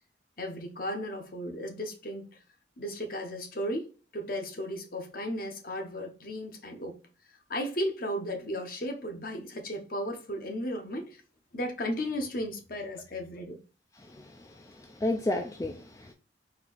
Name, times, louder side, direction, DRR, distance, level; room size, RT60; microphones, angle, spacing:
voice 1, 0.4-2.3 2.8-3.9 4.1-7.0 7.5-11.2 11.5-13.6, equal, 50° left, 0.9 m, -35 dB
voice 2, 14.0-16.1, left 2 dB, 15° left, 0.3 m, -33 dB
4.4 x 2.8 x 4.0 m
head